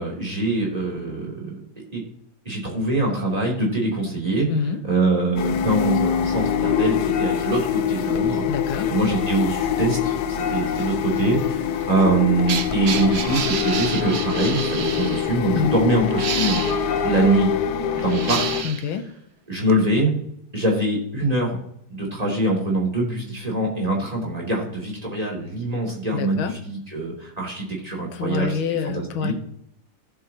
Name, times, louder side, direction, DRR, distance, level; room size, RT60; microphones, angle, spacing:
voice 1, 0.0-1.6 1.9-2.0 2.4-4.5 4.8-8.4 8.9-10.1 10.5-16.6 17.0-17.5 17.9-18.6 19.5-20.1 20.5-21.6 21.9-28.6 28.8-29.3, right 2 dB, 20° right, -3 dB, 3.2 m, -23 dB
voice 2, 4.5-4.8 8.5-8.9 15.5-15.8 18.6-19.1 26.1-26.6 28.1-29.3, left 7 dB, 80° left, 8 dB, 1.8 m, -26 dB
sound 1, 5.4-18.6, left 8 dB, 65° left, 1.2 m, -24 dB
sound 2, 11.7-15.3 16.1-16.9 17.9-18.9 19.7-19.8, right 7 dB, 65° right, 0.6 m, -29 dB
17.0 x 7.5 x 2.9 m, 0.73 s
omnidirectional pair, 2.2 m